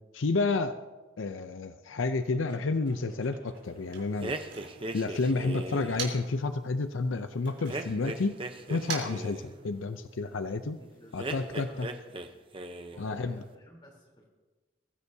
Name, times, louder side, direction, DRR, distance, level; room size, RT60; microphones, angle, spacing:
voice 1, 0.1-0.8 1.2-4.3 4.9-8.4 8.7-10.8 11.1-11.9 13.0-13.4, left 3 dB, 85° left, 10 dB, 0.6 m, -30 dB
Motor vehicle (road), 2.0-6.5 6.8-10.1, right 5 dB, 70° right, 3.8 m, -45 dB
sound 1, 4.2-6.1 7.7-9.5 11.2-12.3 12.5-13.1, right 2 dB, 25° right, 0.8 m, -38 dB
voice 2, 10.7-12.3 12.9-14.3, equal, 25° left, -1 dB, 3.6 m, -52 dB
22.0 x 15.0 x 2.8 m, 1.2 s
head